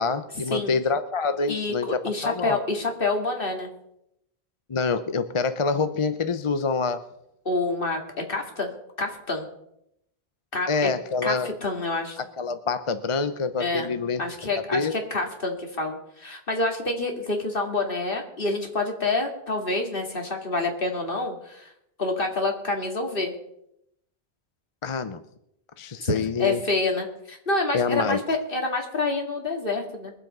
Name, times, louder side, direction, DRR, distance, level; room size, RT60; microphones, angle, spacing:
voice 1, 0.0-2.6 4.7-7.0 10.7-11.6 12.2-14.2 14.7-14.9 24.8-25.2 25.8-26.6 27.7-28.2, left 4 dB, 35° left, 11 dB, 0.6 m, -26 dB
voice 2, 1.5-3.7 7.4-8.0 8.3-8.7 9.0-9.5 10.5-10.7 11.2-12.2 13.6-13.9 14.2-21.7 22.0-23.3 26.0-26.1 26.4-30.1, left 2 dB, 60° left, 3 dB, 2.4 m, -27 dB
22.5 x 7.6 x 5.4 m, 0.79 s
omnidirectional pair, 1.1 m